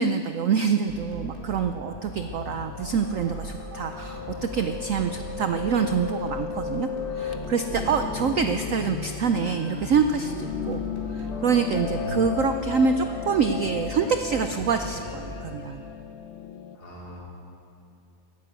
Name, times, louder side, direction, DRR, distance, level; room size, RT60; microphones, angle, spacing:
voice 1, 0.0-6.9 7.1-10.8 11.1-15.8, right 6 dB, 75° right, 7 dB, 0.7 m, -26 dB
sound 1, 0.9-15.8, equal, 25° right, 2.6 m, -40 dB
Piano, 2.3-16.8, left 8 dB, 70° left, 0.6 m, -35 dB
voice 2, 4.9-5.4 7.7-8.1 11.8-12.4 16.7-17.3, right 1 dB, 55° left, -3 dB, 3.4 m, -39 dB
16.0 x 10.5 x 8.0 m, 2.6 s
omnidirectional pair, 2.1 m